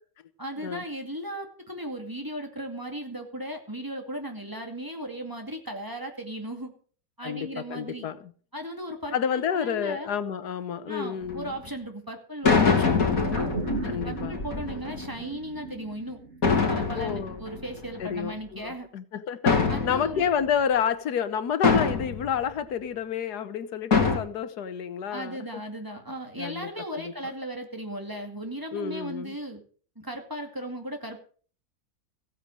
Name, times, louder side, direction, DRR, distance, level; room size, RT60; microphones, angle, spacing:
voice 1, 0.4-6.7 7.2-8.1 8.5-10.1 10.9-13.5 13.8-16.2 16.5-18.9 19.7-20.3 25.1-29.6 30.0-31.2, right 1 dB, 15° right, 2.3 m, -36 dB
voice 2, 7.2-8.3 9.1-11.5 13.9-14.4 16.9-17.4 18.0-25.4 26.4-27.1 28.7-29.4, left 8 dB, 90° left, 1.6 m, -30 dB
sound 1, 11.2-11.5 12.4-15.1 16.4-18.2 19.5-20.4 21.6-22.3 23.9-24.2, left 5 dB, 60° left, 3.2 m, -24 dB
sound 2, 13.3-17.9 18.2-18.3, right 3 dB, 45° right, 2.8 m, -37 dB
15.0 x 9.1 x 6.4 m
omnidirectional pair, 1.7 m